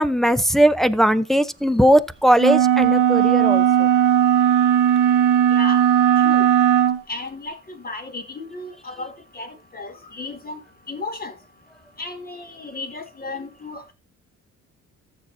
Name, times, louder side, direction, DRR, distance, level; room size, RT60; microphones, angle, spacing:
voice 1, 0.0-3.9, equal, ahead, 0.7 m, -18 dB
sound 1, 2.4-7.0, right 10 dB, 90° right, 1.0 m, -17 dB
voice 2, 5.5-5.8 6.2-6.5 7.1-10.6 10.9-11.3 12.0-13.9, left 3 dB, 30° left, 2.8 m, -34 dB
14.5 x 7.3 x 2.6 m
cardioid pair, 90°, 30 cm